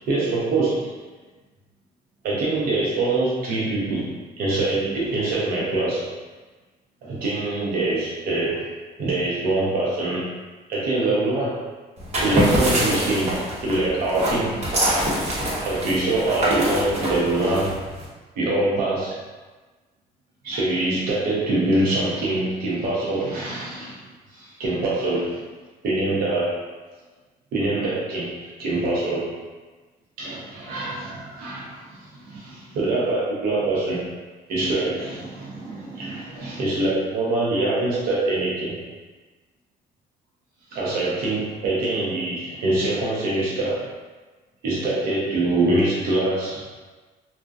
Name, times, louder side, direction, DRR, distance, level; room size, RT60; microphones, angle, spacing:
voice 1, 0.1-0.9 2.2-4.1 4.4-6.1 7.0-8.6 9.0-10.3 10.7-11.6 12.2-14.6 15.6-17.7 18.4-19.2 20.4-24.0 24.3-25.4 25.8-26.6 27.5-28.3 28.6-29.3 30.2-34.0 34.5-38.7 40.7-43.8 44.6-46.6, right 2 dB, 60° right, -6 dB, 0.6 m, -24 dB
sound 1, 12.0-18.0, equal, 40° right, 0.9 m, -25 dB
2.6 x 2.1 x 2.3 m, 1.3 s
cardioid pair, 110°, 17 cm